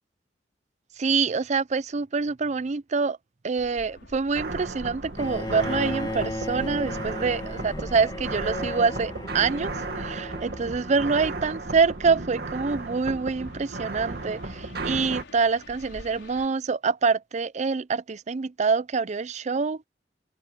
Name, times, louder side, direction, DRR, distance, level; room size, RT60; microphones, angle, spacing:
voice 1, 1.0-3.2 3.4-19.9, right 5 dB, 40° right, 0.5 m, -26 dB
sound 1, 3.6-16.5, left 1 dB, 90° left, 5.5 m, -47 dB
sound 2, 4.3-15.2, right 2 dB, 60° right, 2.0 m, -35 dB
Bowed string instrument, 5.2-11.2, left 1 dB, 25° left, 2.4 m, -36 dB
open air
head